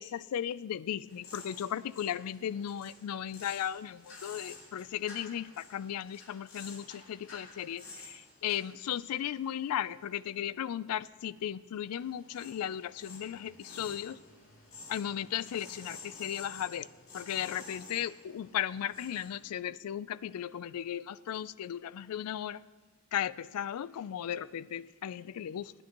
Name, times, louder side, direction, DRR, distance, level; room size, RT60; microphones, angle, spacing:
voice 1, 0.0-14.2 14.9-16.9 17.1-22.6 23.1-25.7, left 10 dB, 90° left, 0.3 m, -36 dB
sound 1, 1.1-10.6 11.0-19.4, left 3 dB, 65° left, 2.8 m, -51 dB
20.5 x 9.9 x 3.0 m
head